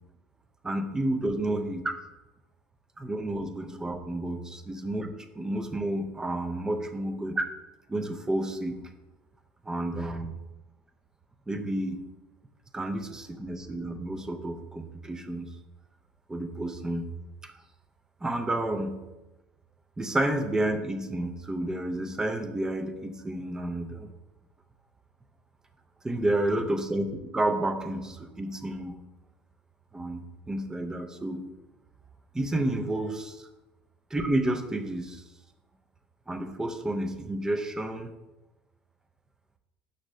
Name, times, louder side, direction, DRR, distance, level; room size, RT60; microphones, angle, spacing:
voice 1, 0.6-1.9 3.0-7.4 7.9-8.8 9.6-10.4 11.5-12.0 12.7-15.5 16.3-17.1 17.4-17.5 18.2-19.0 20.0-24.1 26.0-29.0 29.9-31.4 32.3-33.5 34.1-35.2 36.3-38.1, right 1 dB, 15° right, 6 dB, 0.5 m, -30 dB
6.1 x 2.7 x 3.1 m, 1.0 s
hypercardioid pair, 70°, 4 cm